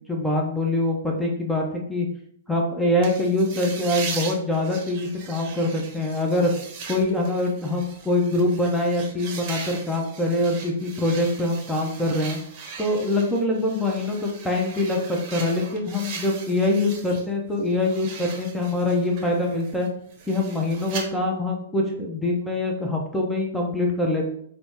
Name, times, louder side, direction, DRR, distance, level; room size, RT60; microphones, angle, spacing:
voice 1, 0.1-2.1 2.5-6.5 6.9-12.4 12.8-19.9 20.3-24.3, left 2 dB, 5° left, -1 dB, 0.6 m, -24 dB
sound 1, 3.0-17.3 17.6-21.0, right 5 dB, 35° right, 0.8 m, -39 dB
3.9 x 2.0 x 3.4 m, 0.67 s
figure-of-eight pair, 110°, 0 cm